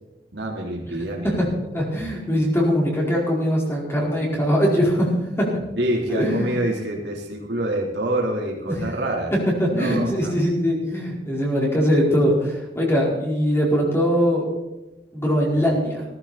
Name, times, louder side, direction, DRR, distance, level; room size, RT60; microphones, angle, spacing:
voice 1, 0.3-1.4 5.8-9.3 9.6-10.3, right 1 dB, 65° right, -1 dB, 3.7 m, -26 dB
voice 2, 1.7-5.5 6.1-6.6 8.7-8.8 9.6-14.4 15.1-16.0, equal, 15° left, -3 dB, 4.6 m, -21 dB
17.0 x 14.5 x 4.3 m, 1.0 s
head